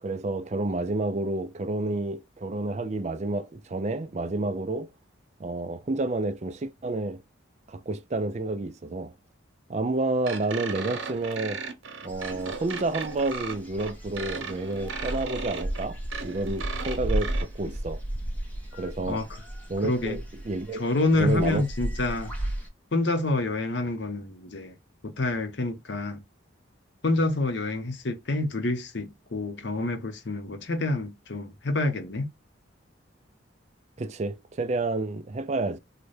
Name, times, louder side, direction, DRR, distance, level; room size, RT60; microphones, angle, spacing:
voice 1, 0.0-4.9 5.4-7.2 7.7-9.1 9.7-11.6 12.0-18.0 18.7-19.2 19.7-20.8 21.1-21.7 34.0-35.8, right 2 dB, 35° right, 0.4 m, -30 dB
sound 1, 10.2-17.4, right 5 dB, 80° right, 1.0 m, -36 dB
sound 2, 12.1-22.7, right 1 dB, 10° left, 0.9 m, -35 dB
voice 2, 19.8-20.2 20.8-22.3 22.9-24.8 25.0-26.2 27.0-32.3, left 2 dB, 60° left, 0.8 m, -27 dB
4.0 x 2.2 x 3.2 m
head